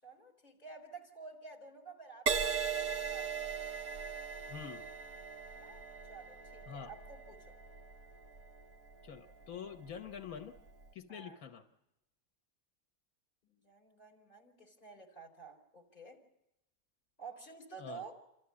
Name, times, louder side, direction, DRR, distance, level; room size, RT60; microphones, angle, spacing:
voice 1, 0.0-3.5 5.5-5.8 6.1-7.6 11.1-11.4 13.4-16.2 17.2-18.1, right 5 dB, 35° left, 1 dB, 4.5 m, -51 dB
Crash cymbal, 2.3-9.9 10.6-10.9, right 6 dB, 85° right, 1.6 m, -39 dB
voice 2, 4.5-4.8 6.7-6.9 9.0-10.6 10.9-11.6 17.8-18.0, left 8 dB, 85° left, 6 dB, 1.5 m, -46 dB
28.5 x 14.0 x 9.6 m, 0.92 s
omnidirectional pair, 1.4 m